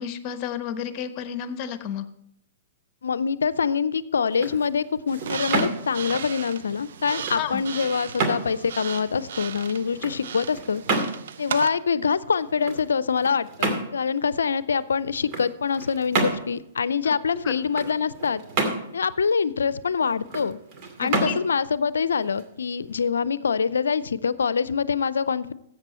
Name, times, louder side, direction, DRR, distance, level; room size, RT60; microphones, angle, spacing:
voice 1, 0.0-2.0 7.3-7.6 17.0-17.1 21.0-21.4, left 8 dB, 35° left, 11 dB, 1.1 m, -31 dB
voice 2, 3.0-10.8 11.4-18.4 18.9-20.6 21.0-25.5, left 6 dB, 85° left, 18 dB, 0.5 m, -25 dB
sound 1, 4.2-23.0, right 3 dB, 40° right, 2.3 m, -32 dB
sound 2, 5.1-11.7, right 8 dB, 70° right, 0.7 m, -36 dB
13.5 x 8.2 x 4.3 m, 0.78 s
hypercardioid pair, 120°, 0 cm